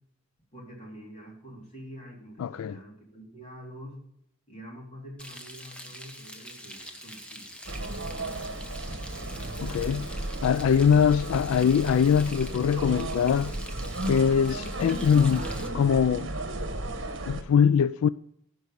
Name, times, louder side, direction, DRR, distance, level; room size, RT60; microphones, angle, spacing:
voice 1, 0.5-4.0 4.5-7.5, equal, 35° left, 3.8 m, -46 dB
voice 2, 2.4-2.8 9.6-10.1 10.4-13.6 14.1-15.5 15.7-16.3 17.3-18.1, left 7 dB, 90° left, 0.3 m, -22 dB
Frying (food), 5.2-15.7, equal, 5° left, 0.9 m, -45 dB
sound 1, 7.6-17.4, right 1 dB, 60° right, 1.2 m, -34 dB
15.5 x 5.3 x 5.2 m
head